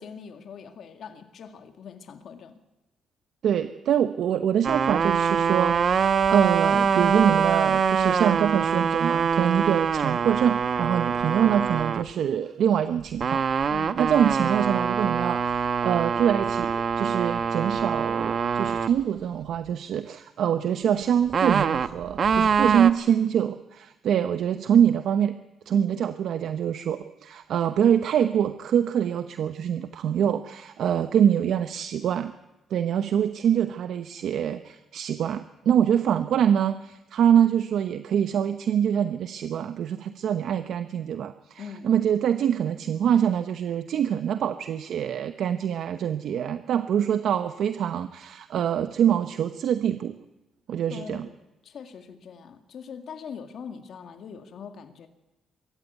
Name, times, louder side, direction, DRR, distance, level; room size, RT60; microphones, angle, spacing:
voice 1, 0.0-2.6 13.7-14.0 41.6-41.9 50.9-51.4 51.6-55.1, left 6 dB, 65° left, 6 dB, 2.0 m, -42 dB
voice 2, 3.4-25.3 25.7-32.3 32.7-50.2 50.7-51.3, right 9 dB, 70° right, 9 dB, 0.9 m, -25 dB
sound 1, 4.6-12.0 13.2-18.9 21.3-22.9, right 6 dB, 50° right, 1.1 m, -24 dB
23.0 x 14.5 x 9.4 m, 0.96 s
cardioid pair, 90°, 0 cm